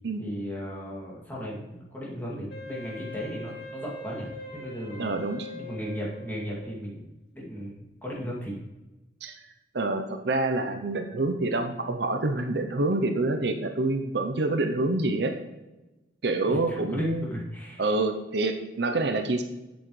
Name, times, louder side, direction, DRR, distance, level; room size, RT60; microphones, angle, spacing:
voice 1, 0.2-5.1 5.5-7.1 7.3-7.7 8.0-8.6 16.5-17.9, equal, 10° left, -5 dB, 2.4 m, -36 dB
Wind instrument woodwind instrument, 2.5-6.8, left 2 dB, 65° left, 2.4 m, -42 dB
voice 2, 5.0-5.5 9.2-9.5 9.7-15.3 16.2-17.3 17.8-19.4, right 2 dB, 65° right, 6 dB, 0.7 m, -27 dB
8.0 x 8.0 x 3.2 m, 1.0 s
head